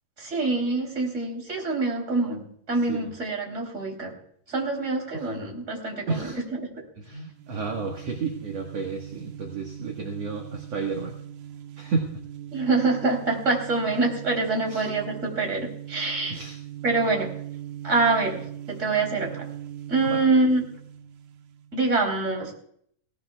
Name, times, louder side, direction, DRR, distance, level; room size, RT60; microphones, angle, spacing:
voice 1, 0.2-4.1 4.5-6.3 6.6-6.8 12.5-16.4 16.8-17.3 17.8-19.5 19.9-20.6 21.7-22.5, right 3 dB, 20° right, 1 dB, 3.5 m, -25 dB
voice 2, 6.1-6.4 7.0-11.2 11.8-12.1 14.7-14.9 16.3-16.6 20.0-20.2, right 4 dB, 50° right, 1 dB, 2.2 m, -31 dB
sound 1, 7.3-21.8, right 10 dB, 80° right, 2.9 m, -40 dB
18.5 x 18.5 x 2.4 m, 0.65 s
omnidirectional pair, 4.4 m